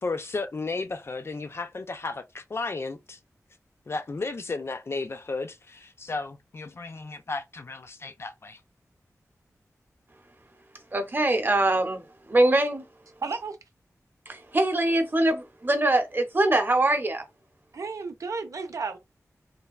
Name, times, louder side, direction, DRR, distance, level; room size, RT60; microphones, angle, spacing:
voice 1, 0.0-3.2 3.9-8.6, left 3 dB, 45° left, 0.4 m, -34 dB
voice 2, 10.9-12.8 14.3-17.2, right 1 dB, 35° right, 0.7 m, -23 dB
voice 3, 13.2-13.6 17.7-19.0, right 4 dB, 70° right, 0.5 m, -33 dB
3.2 x 2.2 x 2.3 m
wide cardioid pair, 90°, 6 cm